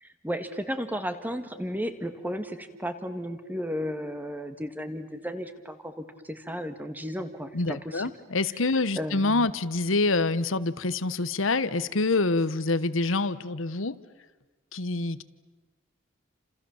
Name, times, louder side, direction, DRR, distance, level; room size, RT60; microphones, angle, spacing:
voice 1, 0.0-5.9 6.2-8.1 9.0-9.5, equal, 10° right, 9 dB, 1.8 m, -34 dB
voice 2, 7.5-14.0 14.7-15.2, left 3 dB, 75° left, 15 dB, 1.2 m, -26 dB
30.0 x 27.5 x 7.2 m, 1.2 s
head